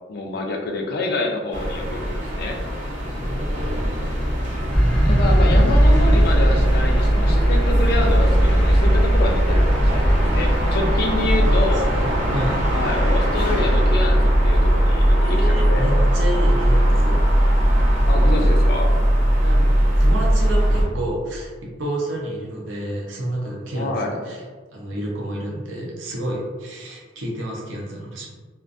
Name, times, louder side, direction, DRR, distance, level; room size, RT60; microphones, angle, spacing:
voice 1, 0.1-2.6 5.1-10.0 10.3-11.9 12.7-16.0 18.1-19.0 23.7-24.1, left 2 dB, 55° left, 2 dB, 0.4 m, -27 dB
sound 1, 1.5-20.8, equal, 40° right, 0.6 m, -20 dB
voice 2, 3.1-3.8 11.4-12.6 15.2-17.2 19.4-19.7 20.0-24.4 24.7-28.3, right 1 dB, 90° right, -3 dB, 0.6 m, -30 dB
sound 2, 4.7-18.5, equal, 5° left, 0.5 m, -20 dB
2.4 x 2.2 x 2.5 m, 1.4 s
head